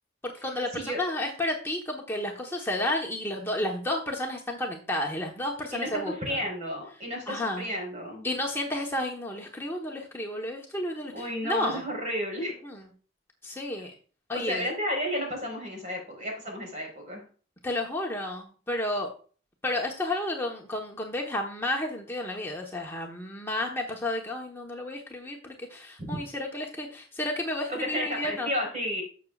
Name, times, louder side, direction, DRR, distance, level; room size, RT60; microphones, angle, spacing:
voice 1, 0.2-6.4 7.3-7.7 8.2-11.8 12.6-12.8 13.4-13.9 14.3-14.6 17.6-19.1 19.6-28.5, left 1 dB, 15° left, -1 dB, 1.1 m, -32 dB
voice 2, 5.7-8.3 11.1-12.6 14.3-17.2 26.0-26.2 27.8-29.0, equal, 40° right, 1 dB, 4.4 m, -32 dB
12.0 x 7.1 x 2.4 m, 0.39 s
head